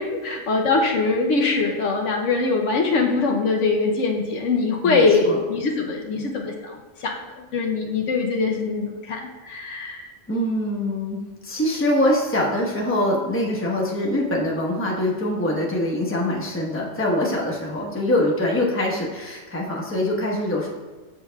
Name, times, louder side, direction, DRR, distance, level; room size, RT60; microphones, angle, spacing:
voice 1, 0.2-10.1, left 3 dB, 75° left, 1 dB, 1.0 m, -22 dB
voice 2, 4.8-5.4 6.1-6.2 10.3-20.7, left 1 dB, 10° left, -3 dB, 0.9 m, -24 dB
7.0 x 6.8 x 2.3 m, 1.3 s
omnidirectional pair, 1.3 m